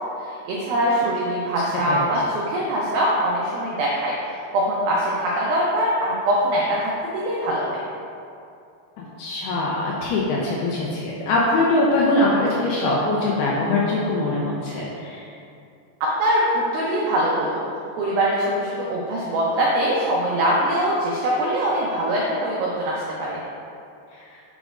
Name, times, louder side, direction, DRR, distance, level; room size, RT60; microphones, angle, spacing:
voice 1, 0.2-4.1 4.5-7.8 16.2-17.6 18.0-23.4, right 1 dB, 90° right, -5 dB, 2.0 m, -23 dB
voice 2, 1.9-2.2 9.0-15.3 24.1-24.2, left 2 dB, 85° left, -5 dB, 2.3 m, -22 dB
8.7 x 5.1 x 2.5 m, 2.5 s
omnidirectional pair, 5.2 m